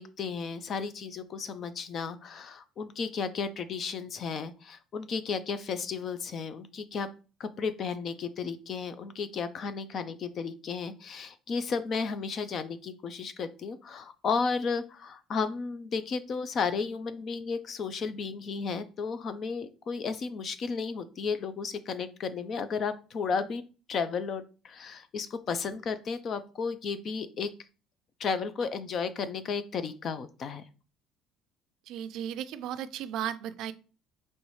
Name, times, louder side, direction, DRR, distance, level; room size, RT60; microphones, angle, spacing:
voice 1, 0.0-7.1 7.4-23.6 23.9-27.5 28.2-30.6, left 5 dB, 35° left, 12 dB, 0.5 m, -33 dB
voice 2, 31.9-33.7, right 10 dB, 60° right, 13 dB, 0.4 m, -35 dB
5.4 x 3.1 x 3.1 m, 0.35 s
cardioid pair, 155°, 0 cm